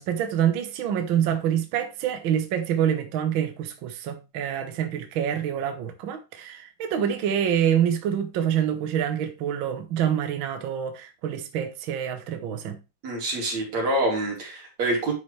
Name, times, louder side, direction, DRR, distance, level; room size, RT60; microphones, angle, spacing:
voice 1, 0.0-12.8, right 9 dB, 85° right, 1.1 m, -26 dB
voice 2, 13.0-15.1, right 1 dB, 55° right, 3.8 m, -26 dB
10.5 x 5.0 x 3.2 m
omnidirectional pair, 3.8 m